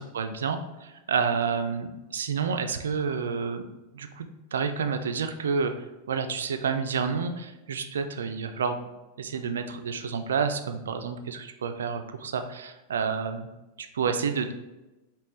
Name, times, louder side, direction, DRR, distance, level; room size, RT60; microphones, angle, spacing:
voice 1, 0.0-3.7 3.9-8.8 9.2-13.5 13.8-14.5, right 5 dB, 65° right, 8 dB, 0.3 m, -29 dB
5.1 x 2.9 x 3.0 m, 1.1 s
figure-of-eight pair, 90°, 0 cm